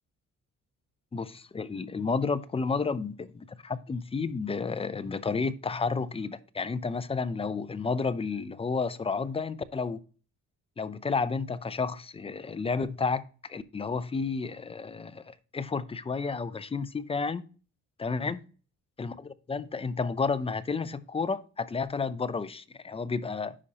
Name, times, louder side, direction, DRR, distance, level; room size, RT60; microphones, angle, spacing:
voice 1, 1.1-10.0 10.8-13.2 13.5-17.4 18.0-18.4 19.0-23.6, left 4 dB, 20° left, 0.5 m, -31 dB
9.9 x 5.5 x 2.9 m
cardioid pair, 120°, 30 cm